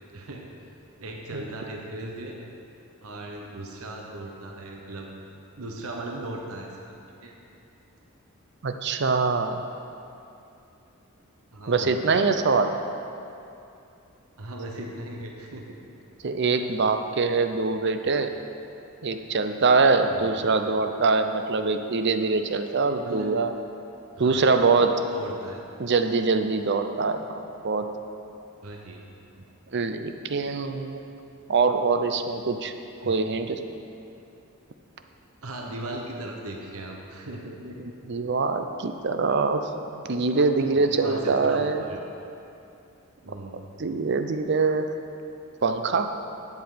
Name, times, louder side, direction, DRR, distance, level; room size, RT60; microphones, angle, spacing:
voice 1, 0.1-0.4 1.0-2.4 3.0-5.1 5.6-6.9 7.2-7.4 11.5-12.0 14.4-15.8 16.8-16.9 20.2-20.4 23.0-23.3 24.2-24.5 25.0-25.6 28.6-29.0 29.3-29.4 33.0-33.2 35.4-37.8 40.6-42.0 43.2-43.5, right 1 dB, 75° right, 0 dB, 1.0 m, -37 dB
voice 2, 8.6-9.6 11.7-12.7 16.2-18.3 19.0-23.5 24.2-25.0 25.8-27.9 29.7-31.0 31.5-32.7 33.0-33.6 37.8-41.8 43.8-44.9 45.6-46.1, right 4 dB, 50° right, 8 dB, 0.6 m, -24 dB
10.5 x 7.9 x 5.1 m, 2.7 s
head